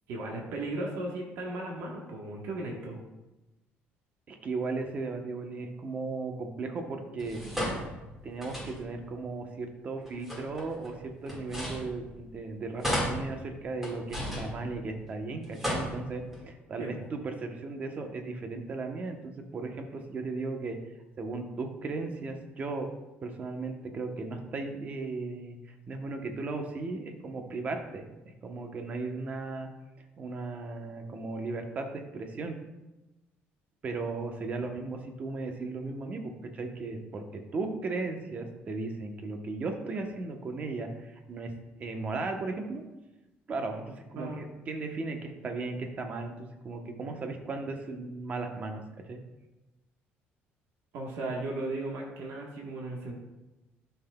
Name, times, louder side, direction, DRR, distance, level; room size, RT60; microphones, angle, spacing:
voice 1, 0.1-3.0 16.8-17.0 44.1-44.4 50.9-53.2, right 2 dB, 75° right, -1 dB, 1.3 m, -36 dB
voice 2, 4.3-7.4 8.2-20.8 21.2-22.9 23.2-29.7 30.2-32.6 33.8-41.5 41.8-42.8 43.5-49.2, right 3 dB, 35° right, 4 dB, 0.9 m, -36 dB
sound 1, 7.2-9.1 10.0-12.4 12.8-15.1 15.4-16.4, equal, 5° right, 1.8 m, -35 dB
12.5 x 5.8 x 2.3 m, 1.0 s
cardioid pair, 145°, 4 cm